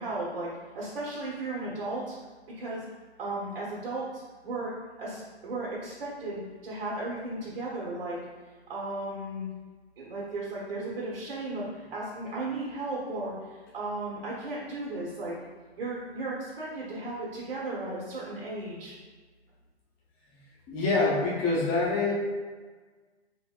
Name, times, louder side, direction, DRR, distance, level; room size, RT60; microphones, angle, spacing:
voice 1, 0.0-2.2 2.5-2.8 3.2-8.2 8.7-9.5 10.0-15.4 15.8-18.9, right 2 dB, 55° right, -6 dB, 1.2 m, -35 dB
voice 2, 20.7-22.1, left 3 dB, 20° left, -5 dB, 0.8 m, -25 dB
4.2 x 3.0 x 2.4 m, 1.4 s
figure-of-eight pair, 125°, 33 cm